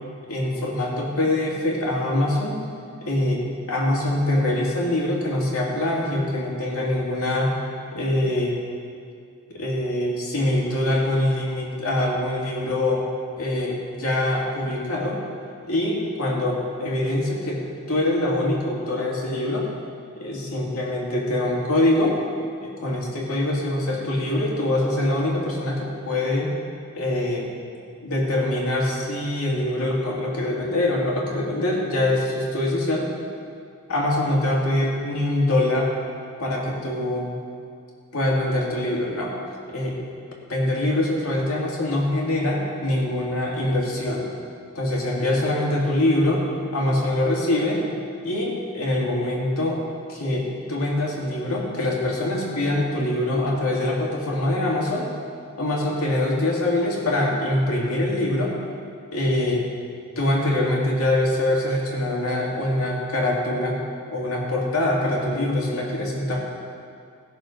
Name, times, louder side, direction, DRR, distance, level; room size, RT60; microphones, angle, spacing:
voice 1, 0.3-2.6 3.0-7.6 7.9-8.6 9.5-13.1 13.4-15.2 15.6-17.6 17.9-19.7 20.2-22.2 22.6-26.5 26.9-27.5 28.0-33.1 33.9-35.9 36.4-37.3 38.1-39.3 39.7-40.0 40.5-44.3 44.7-46.4 46.7-47.8 48.2-49.8 50.1-55.1 55.6-58.5 59.1-59.7 60.2-63.8 64.1-66.4, left 1 dB, 80° left, -3 dB, 2.3 m, -24 dB
16.5 x 6.7 x 5.2 m, 2.3 s
head